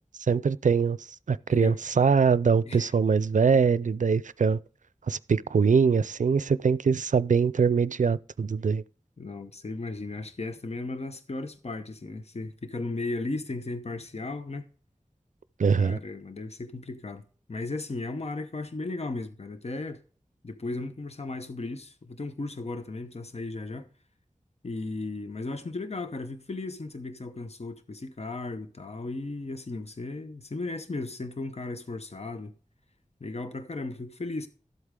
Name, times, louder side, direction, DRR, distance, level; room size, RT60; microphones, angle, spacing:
voice 1, 0.3-1.0 1.3-4.6 5.1-8.8 15.6-16.0, right 5 dB, 85° right, 0.4 m, -23 dB
voice 2, 9.2-14.7 15.8-20.0 20.4-23.9 24.6-32.5 33.2-34.5, left 2 dB, 55° left, 0.9 m, -36 dB
13.0 x 8.1 x 3.7 m
wide cardioid pair, 50°, 13 cm